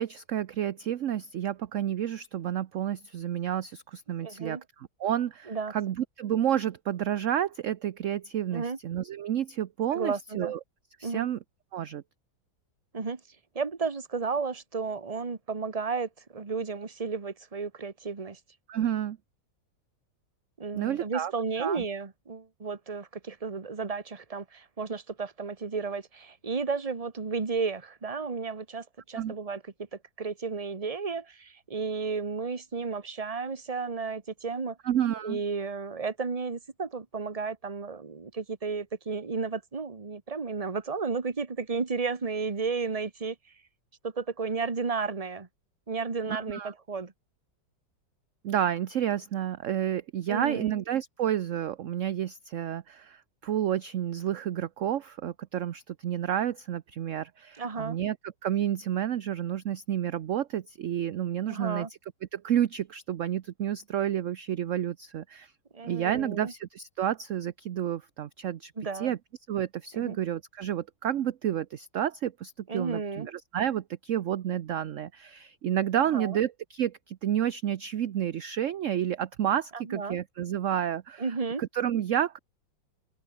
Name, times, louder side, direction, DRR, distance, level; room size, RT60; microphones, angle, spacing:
voice 1, 0.0-10.6 11.0-11.4 11.7-12.0 18.7-19.2 20.7-21.3 21.6-21.8 29.1-29.3 34.8-35.4 46.3-46.7 48.4-61.9 62.3-65.5 65.8-69.2 69.5-81.3 81.6-82.4, right 10 dB, 60° right, 0.9 m, -30 dB
voice 2, 4.2-4.6 5.5-5.7 8.5-8.8 9.9-10.5 11.0-11.3 12.9-13.2 13.5-18.4 20.6-29.6 30.2-34.8 35.2-43.3 44.0-45.5 45.9-47.1 50.3-50.7 57.6-58.0 61.5-61.9 65.7-66.5 68.8-69.1 69.9-70.2 72.7-73.3 76.1-76.4 79.7-80.2 81.2-81.6, right 4 dB, 20° right, 1.4 m, -33 dB
open air
omnidirectional pair, 2.0 m